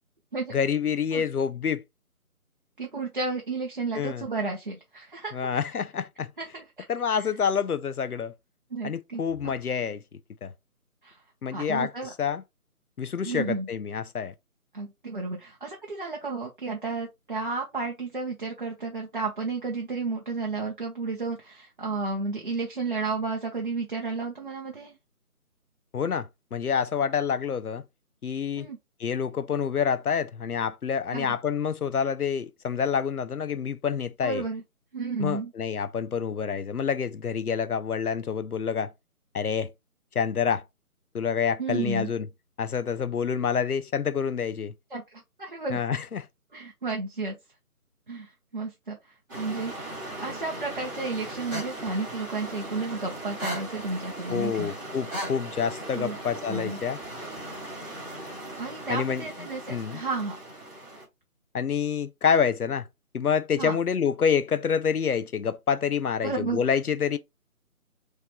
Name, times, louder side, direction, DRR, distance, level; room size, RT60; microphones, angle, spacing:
voice 1, 0.5-1.8 3.9-4.3 5.3-6.3 6.9-8.3 8.8-10.0 10.4-10.5 11.4-12.4 13.0-14.3 25.9-27.8 28.2-28.7 29.0-34.5 35.2-38.9 39.3-39.7 40.1-40.6 41.1-42.3 42.6-44.7 45.7-46.3 54.3-57.0 58.9-59.3 59.7-60.0 61.5-62.9 63.1-67.2, left 7 dB, 80° left, 0.6 m, -27 dB
voice 2, 2.8-5.4 6.4-6.6 7.1-7.2 8.7-9.2 11.0-11.2 11.5-12.1 13.2-13.7 14.7-24.9 28.6-28.8 31.1-31.3 34.2-34.6 34.9-35.5 41.6-42.1 44.9-45.8 46.5-47.3 48.1-49.0 49.3-49.7 50.2-54.7 55.9-56.2 56.5-56.8 58.6-60.4 63.6-63.8 66.2-66.6, right 3 dB, 35° right, 0.7 m, -32 dB
sound 1, 49.3-61.0, right 1 dB, 15° right, 1.5 m, -38 dB
3.5 x 3.2 x 4.5 m
figure-of-eight pair, 155°, 45 cm